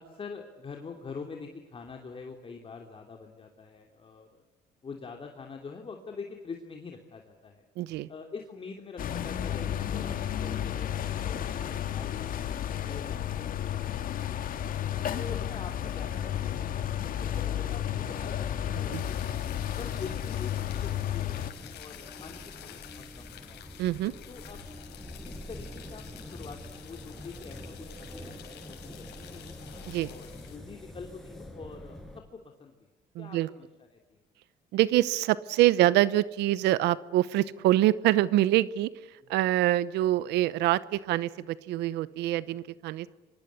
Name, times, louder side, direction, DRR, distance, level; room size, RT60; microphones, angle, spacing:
voice 1, 0.0-4.4 4.8-7.6 8.1-12.3 12.6-14.6 15.1-16.7 17.1-19.0 19.8-23.7 24.3-24.6 25.2-29.6 30.0-32.8 33.2-34.2 39.2-39.3 42.4-42.7, left 4 dB, 30° left, 3 dB, 3.1 m, -45 dB
voice 2, 7.8-8.1 18.9-19.0 23.8-24.1 29.9-30.1 33.1-33.5 34.7-38.9 39.3-43.1, right 15 dB, 85° right, 18 dB, 0.9 m, -25 dB
sound 1, 9.0-21.5, left 10 dB, 55° left, 2.1 m, -32 dB
sound 2, 15.5-32.2, left 1 dB, ahead, 5.9 m, -47 dB
sound 3, 18.9-30.6, left 10 dB, 80° left, 5.8 m, -49 dB
29.0 x 24.0 x 8.4 m, 1.1 s
cardioid pair, 110°, 17 cm